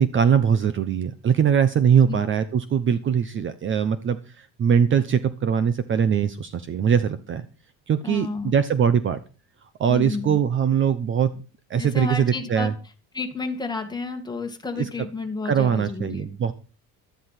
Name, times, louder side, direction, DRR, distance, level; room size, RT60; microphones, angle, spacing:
voice 1, 0.0-7.4 7.9-9.2 9.8-11.3 11.7-12.7 15.4-16.5, right 7 dB, 30° right, 14 dB, 0.8 m, -21 dB
voice 2, 8.0-8.5 9.9-10.4 11.8-12.7 13.1-16.3, left 4 dB, 10° left, 4 dB, 2.1 m, -31 dB
13.0 x 11.0 x 5.8 m, 0.35 s
cardioid pair, 155°, 38 cm